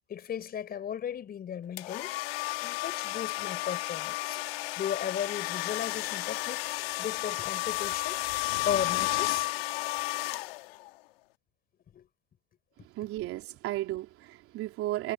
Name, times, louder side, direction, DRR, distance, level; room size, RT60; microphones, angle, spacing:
voice 1, 0.1-2.1 2.6-4.4 4.8-6.6 7.0-8.2 8.6-9.5 11.9-12.1, left 9 dB, 30° left, 4.7 m, -35 dB
sound 1, 1.8-10.9, left 20 dB, 75° left, 1.9 m, -32 dB
voice 2, 12.8-15.1, right 16 dB, 50° right, 3.5 m, -34 dB
supercardioid pair, 110°, 30 cm